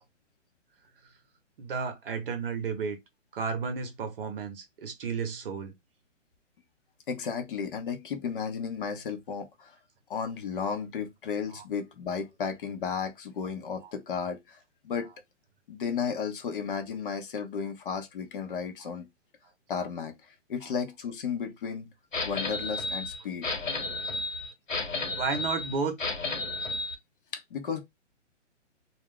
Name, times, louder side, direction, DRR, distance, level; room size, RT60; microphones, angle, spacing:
voice 1, 1.6-3.0 3.3-5.8 11.5-11.6 13.8-13.9 25.1-25.9, right 5 dB, 50° right, 0.8 m, -32 dB
voice 2, 7.1-9.8 10.1-15.1 15.7-19.1 19.7-21.9 22.2-23.5 27.3-27.8, left 6 dB, 45° left, 0.6 m, -34 dB
sound 1, 22.1-26.9, left 3 dB, 85° left, 1.2 m, -32 dB
2.4 x 2.0 x 3.5 m
hypercardioid pair, 145°, 38 cm